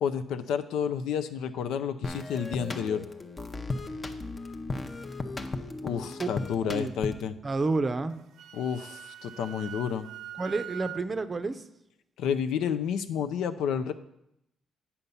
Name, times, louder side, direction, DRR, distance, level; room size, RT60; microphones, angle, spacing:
voice 1, 0.0-3.1 5.8-7.4 8.5-10.1 12.2-13.9, left 7 dB, 85° left, 9 dB, 0.5 m, -30 dB
sound 1, 2.0-7.4, left 3 dB, 30° left, 0.7 m, -36 dB
voice 2, 7.4-8.2 10.4-11.6, right 3 dB, 30° right, 11 dB, 0.6 m, -29 dB
Wind instrument woodwind instrument, 8.1-11.0, right 11 dB, 75° right, 0.3 m, -43 dB
8.4 x 5.7 x 5.4 m, 0.81 s
cardioid pair, 90°, 0 cm